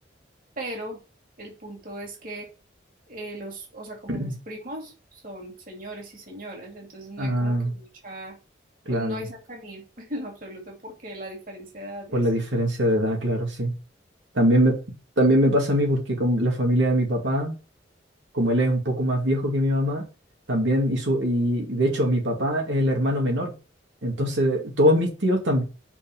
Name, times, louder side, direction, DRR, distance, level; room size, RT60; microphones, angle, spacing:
voice 1, 0.6-1.0 1.4-2.5 3.1-8.3 8.9-12.3, right 1 dB, 45° right, 2.7 m, -38 dB
voice 2, 7.2-7.7 8.9-9.2 12.1-13.7 14.3-14.8 15.2-17.6 18.3-20.0 20.5-23.5 24.0-25.6, equal, 85° right, 2.4 m, -22 dB
6.2 x 5.6 x 5.5 m
head